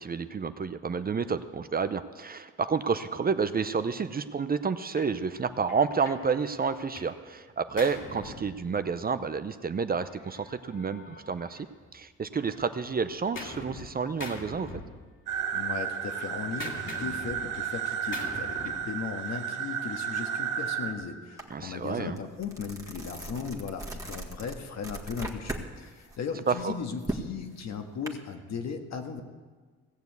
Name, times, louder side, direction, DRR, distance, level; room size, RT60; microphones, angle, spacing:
voice 1, 0.0-11.7 11.9-14.8 21.5-22.2 26.5-26.7, right 5 dB, 30° right, 11 dB, 0.7 m, -30 dB
Gunshot gunfire, 5.0-5.2 5.7-7.2 7.5-9.2 10.1-12.0 12.3-13.9 14.2-15.4 15.7-18.9, left 2 dB, 40° left, 2.3 m, -44 dB
sound 1, 15.3-20.9, right 8 dB, 80° right, 2.0 m, -33 dB
voice 2, 15.5-29.2, left 6 dB, 60° left, 5 dB, 1.6 m, -37 dB
sound 2, 21.4-21.5 21.9-25.7 26.0-28.1, right 1 dB, 10° right, 1.8 m, -38 dB
17.0 x 7.1 x 8.2 m, 1.4 s
cardioid pair, 90°, 30 cm